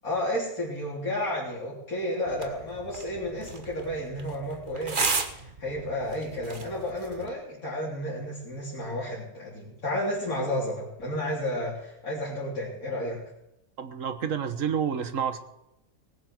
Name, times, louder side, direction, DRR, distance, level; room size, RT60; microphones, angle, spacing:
voice 1, 0.0-5.0 5.3-13.2, left 1 dB, 65° left, -6 dB, 3.8 m, -32 dB
sound 1, 2.3-7.3, right 4 dB, 35° right, 1.4 m, -34 dB
voice 2, 13.8-15.4, right 7 dB, 60° right, 9 dB, 1.6 m, -29 dB
19.0 x 7.5 x 7.9 m, 0.87 s
omnidirectional pair, 1.6 m